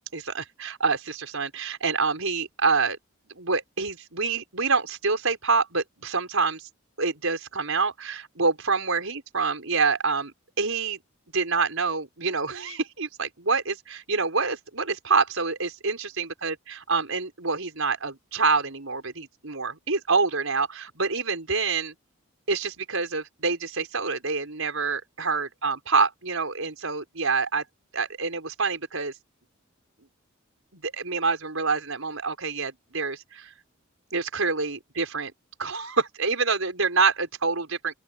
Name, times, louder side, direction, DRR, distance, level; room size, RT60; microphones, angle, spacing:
voice 1, 0.1-3.0 3.3-6.7 7.0-11.0 11.3-21.9 22.5-27.6 27.9-29.1 30.7-33.5 34.1-35.3 35.6-37.9, right 4 dB, 80° right, 4.9 m, -26 dB
open air
head